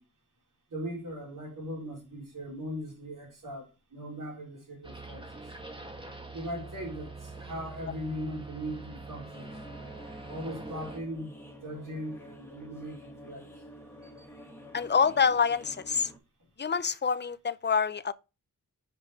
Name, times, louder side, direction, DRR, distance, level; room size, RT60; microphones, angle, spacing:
voice 1, 0.7-5.2 6.3-9.5 10.3-13.4 14.0-14.4, equal, 65° right, 4.0 m, -39 dB
sound 1, 4.8-11.0, right 3 dB, 15° right, 1.5 m, -44 dB
sound 2, 9.3-16.2, equal, 5° left, 1.8 m, -49 dB
voice 2, 14.7-16.1 16.6-18.1, left 6 dB, 30° left, 0.5 m, -26 dB
6.0 x 5.0 x 4.8 m
wide cardioid pair, 80°, 35 cm